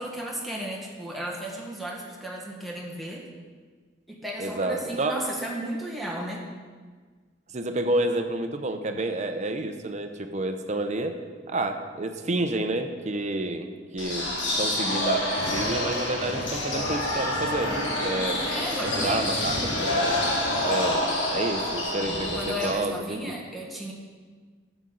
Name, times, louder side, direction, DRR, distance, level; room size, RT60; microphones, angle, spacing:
voice 1, 0.0-3.2 4.1-6.4 18.5-19.5 22.3-23.9, equal, ahead, -2 dB, 1.5 m, -34 dB
voice 2, 4.4-5.2 7.5-11.2 11.5-14.3 14.6-18.4 18.8-19.5 19.8-20.3 20.6-21.0 21.3-23.2, right 2 dB, 40° right, 7 dB, 0.7 m, -29 dB
sound 1, 14.0-22.7, left 1 dB, 75° left, 1.8 m, -27 dB
11.5 x 8.1 x 3.9 m, 1.5 s
head